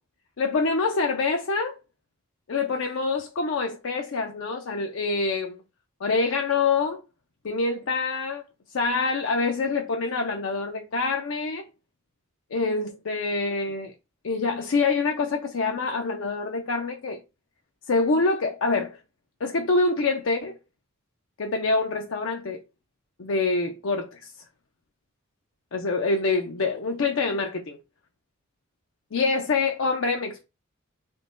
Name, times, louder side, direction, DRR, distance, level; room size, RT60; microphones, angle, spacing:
voice 1, 0.4-1.8 2.5-5.6 6.0-7.0 7.4-8.4 8.7-11.7 12.5-13.9 14.2-17.2 17.9-19.0 19.4-20.6 21.4-22.6 23.2-24.2 25.7-27.8 29.1-30.5, left 3 dB, 65° left, 0.5 m, -26 dB
3.8 x 2.2 x 3.7 m
head